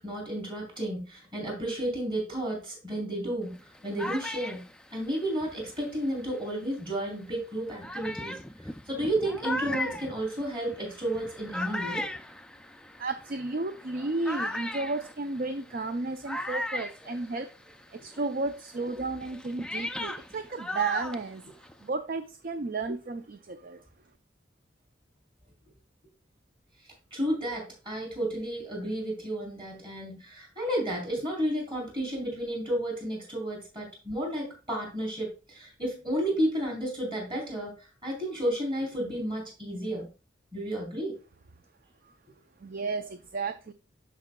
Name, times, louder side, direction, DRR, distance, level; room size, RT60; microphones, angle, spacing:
voice 1, 0.0-3.5 3.8-4.6 4.9-12.1 27.1-40.1 40.5-41.2, right 1 dB, 25° right, 0 dB, 3.5 m, -32 dB
sound 1, 3.5-6.5 7.2-7.3 7.8-17.8 18.1-21.9, left 1 dB, 5° left, 0.3 m, -38 dB
voice 2, 13.0-17.5 17.9-21.5 21.8-23.8 42.6-43.7, right 3 dB, 50° right, 8 dB, 0.5 m, -33 dB
13.0 x 4.8 x 2.3 m, 0.33 s
head